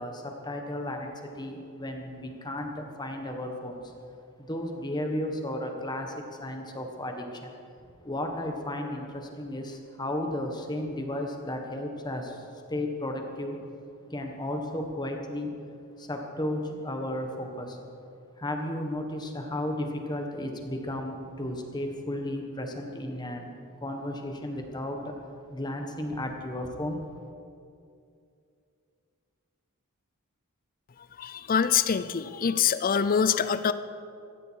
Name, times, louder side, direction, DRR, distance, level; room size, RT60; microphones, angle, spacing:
voice 1, 0.0-3.9 4.4-7.5 8.0-13.6 14.1-15.5 16.0-17.8 18.4-25.1 25.5-27.0, left 1 dB, 20° left, 3 dB, 1.5 m, -34 dB
voice 2, 31.2-33.7, left 7 dB, 40° left, 13 dB, 0.5 m, -25 dB
15.5 x 14.5 x 4.7 m, 2.5 s
head